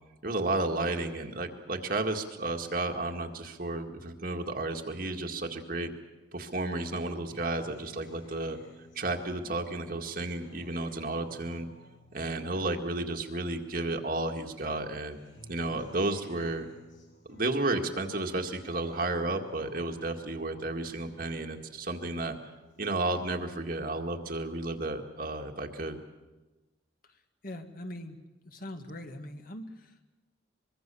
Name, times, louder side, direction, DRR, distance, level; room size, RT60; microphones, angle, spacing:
voice 1, 0.2-5.9 6.3-8.6 9.0-11.7 12.1-15.2 15.5-16.7 17.3-22.4 22.8-26.0, right 2 dB, 50° right, 4 dB, 2.0 m, -32 dB
Acoustic guitar, 7.3-13.9 14.3-21.9 22.3-23.3, left 1 dB, 85° left, 6.5 m, -56 dB
voice 2, 27.0-28.2 28.4-30.0, left 1 dB, 50° left, 6 dB, 1.8 m, -42 dB
24.0 x 23.0 x 7.0 m, 1.2 s
head